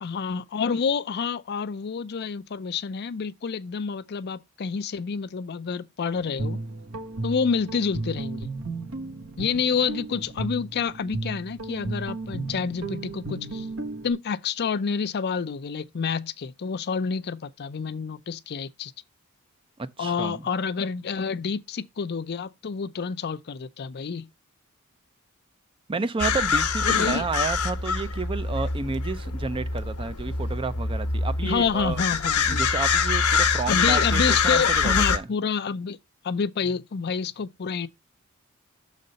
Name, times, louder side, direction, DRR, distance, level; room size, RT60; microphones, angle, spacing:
voice 1, 0.0-6.6 7.2-8.5 9.4-13.7 14.0-18.9 20.0-24.3 26.8-27.3 31.4-32.6 33.7-36.0 36.2-37.9, left 5 dB, 45° left, 0.5 m, -28 dB
Guitar, 6.1-14.1, right 2 dB, 70° right, 1.5 m, -34 dB
voice 2, 20.0-20.5 25.9-32.0 32.5-35.3, right 4 dB, 25° right, 0.5 m, -31 dB
sound 1, 26.2-35.2, left 5 dB, 80° left, 1.1 m, -25 dB
6.5 x 4.1 x 5.2 m
head